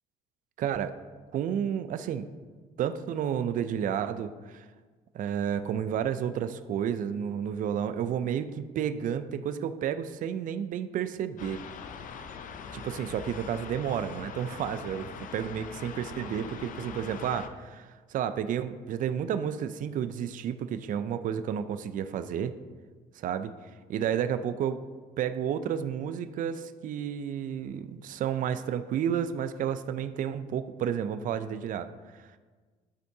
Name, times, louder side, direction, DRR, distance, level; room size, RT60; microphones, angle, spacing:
voice 1, 0.6-1.0 1.3-2.3 2.8-4.7 5.1-11.6 12.7-22.6 23.2-23.5 23.9-24.8 25.2-31.9, right 9 dB, 50° right, 10 dB, 0.4 m, -31 dB
sound 1, 11.4-17.5, left 6 dB, 50° left, 0.5 m, -42 dB
11.0 x 4.5 x 2.7 m, 1.4 s
cardioid pair, 110°, 17 cm